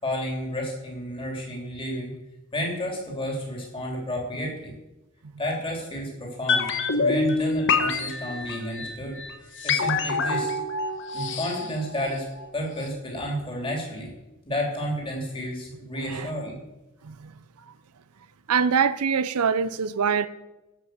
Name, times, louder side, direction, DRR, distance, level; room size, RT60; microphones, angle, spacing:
voice 1, 0.0-2.1 2.5-4.7 5.4-6.7 7.0-9.2 9.6-10.5 11.1-12.2 12.5-14.1 14.4-16.6, equal, 25° left, 3.3 m, -31 dB
sound 1, 6.5-12.5 12.8-12.9, left 4 dB, 55° left, 1.3 m, -26 dB
voice 2, 16.0-16.3 17.0-17.7 18.5-20.3, right 6 dB, 85° right, 0.6 m, -25 dB
13.0 x 5.9 x 7.9 m
head